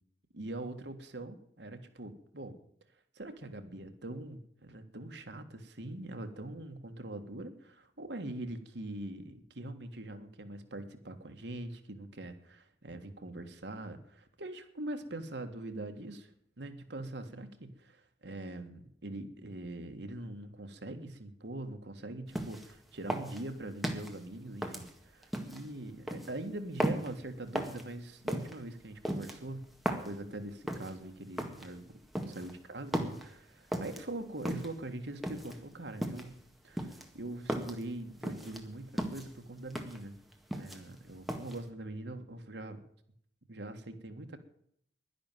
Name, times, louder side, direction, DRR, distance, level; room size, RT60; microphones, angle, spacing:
voice 1, 0.3-2.6 3.1-16.3 16.6-29.7 30.0-32.0 32.2-36.3 36.6-40.2 40.5-42.8 43.5-44.4, right 1 dB, 70° right, 7 dB, 1.6 m, -43 dB
sound 1, 22.3-22.7 23.1-24.1 24.6-25.6 26.1-26.3 26.8-27.1 27.5-27.8 28.3-28.5 29.0-30.1 30.7-30.9 31.4-31.7 32.1-32.5 32.9-33.3 33.7-34.0 34.4-34.8 35.2-35.6 36.0-36.4 36.8-37.8 38.2-38.6 39.0-39.3 39.7-40.0 40.3-41.0 41.3-41.6, equal, ahead, 1.8 m, -35 dB
11.0 x 11.0 x 9.1 m, 0.68 s
head